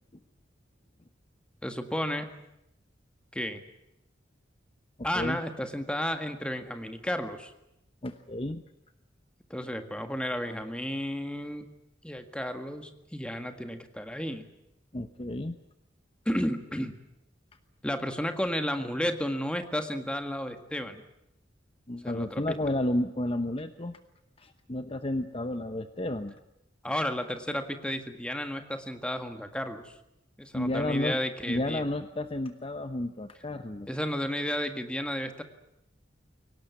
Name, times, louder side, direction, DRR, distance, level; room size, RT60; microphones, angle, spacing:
voice 1, 1.6-2.3 3.3-3.6 5.0-7.5 9.5-11.6 12.0-14.5 16.2-16.9 17.8-21.0 22.0-22.6 26.8-29.9 30.4-31.8 33.9-35.4, equal, 5° left, 7 dB, 1.8 m, -32 dB
voice 2, 8.0-8.6 14.9-15.6 21.9-24.0 24.4-26.3 30.5-31.2 31.5-33.9, left 1 dB, 30° left, 9 dB, 1.0 m, -31 dB
23.5 x 18.5 x 9.6 m, 0.86 s
head